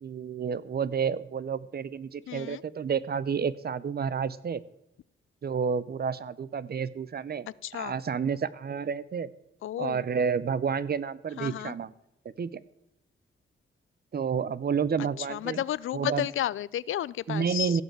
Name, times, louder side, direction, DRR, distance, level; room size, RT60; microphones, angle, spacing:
voice 1, 0.0-4.6 5.4-7.5 7.8-9.3 9.8-11.9 12.4-12.5 14.1-15.6 15.9-16.3 17.3-17.8, right 6 dB, 50° right, 17 dB, 0.7 m, -30 dB
voice 2, 2.3-2.6 7.6-7.9 9.6-10.0 11.4-11.7 15.0-17.8, left 12 dB, 80° left, 21 dB, 0.4 m, -32 dB
16.0 x 5.6 x 7.5 m, 0.84 s
cardioid pair, 80°, 21 cm